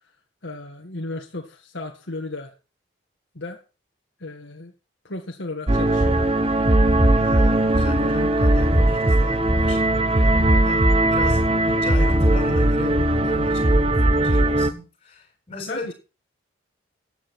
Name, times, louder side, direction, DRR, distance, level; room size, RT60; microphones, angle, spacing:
voice 1, 0.4-2.5 3.3-3.6 4.2-4.7 5.0-6.2 11.2-11.4 15.7-15.9, left 2 dB, 70° left, 1.9 m, -34 dB
sound 1, 5.7-14.7, right 1 dB, 30° right, 1.1 m, -19 dB
voice 2, 7.1-15.9, left 2 dB, 30° left, 7.3 m, -35 dB
14.5 x 10.5 x 4.4 m
head